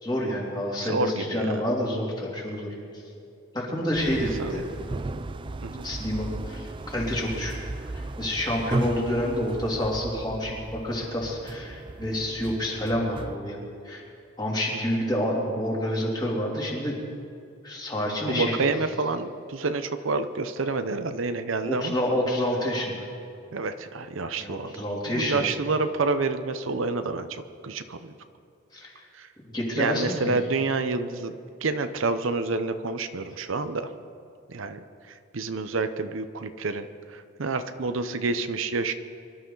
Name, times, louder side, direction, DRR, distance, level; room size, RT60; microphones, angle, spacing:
voice 1, 0.0-2.7 3.5-4.6 5.8-7.5 7.9-14.0 14.4-16.9 17.6-18.5 21.6-23.1 24.4-25.5 28.7-28.9 29.5-30.1, left 1 dB, 20° left, -3 dB, 2.9 m, -28 dB
voice 2, 0.8-1.7 4.4-4.6 5.6-5.9 14.9-15.0 18.2-21.9 23.5-24.7 25.1-28.1 29.1-29.3 29.8-33.9 34.5-38.9, right 3 dB, 75° right, 10 dB, 0.7 m, -28 dB
sound 1, 3.9-13.4, right 2 dB, 25° right, 0.3 m, -36 dB
24.5 x 12.5 x 3.9 m, 2.6 s
head